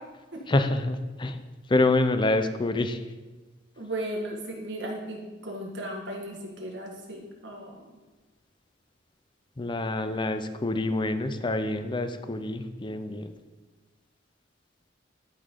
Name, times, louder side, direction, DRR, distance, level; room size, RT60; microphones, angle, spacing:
voice 1, 0.5-1.4 1.7-3.0 9.6-13.3, left 2 dB, 25° left, 9 dB, 0.5 m, -26 dB
voice 2, 3.8-7.9, right 1 dB, 70° right, -1 dB, 1.7 m, -36 dB
12.0 x 5.3 x 3.8 m, 1.3 s
head